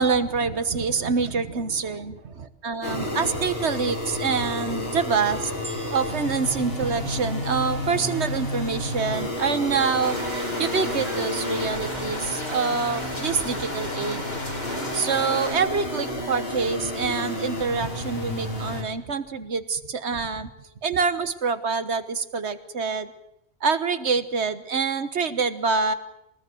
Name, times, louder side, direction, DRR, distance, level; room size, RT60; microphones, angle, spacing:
voice 1, 0.0-5.5 5.9-14.2 14.9-20.5 20.8-23.1 23.6-25.9, right 5 dB, 85° right, 11 dB, 1.6 m, -26 dB
sound 1, 2.8-18.8, left 1 dB, 65° left, 4.0 m, -31 dB
sound 2, 5.6-8.0 8.7-8.8, right 2 dB, 50° right, 2.6 m, -46 dB
sound 3, 10.0-15.5, left 1 dB, 40° left, 2.9 m, -35 dB
23.5 x 19.5 x 7.8 m, 0.83 s
omnidirectional pair, 1.1 m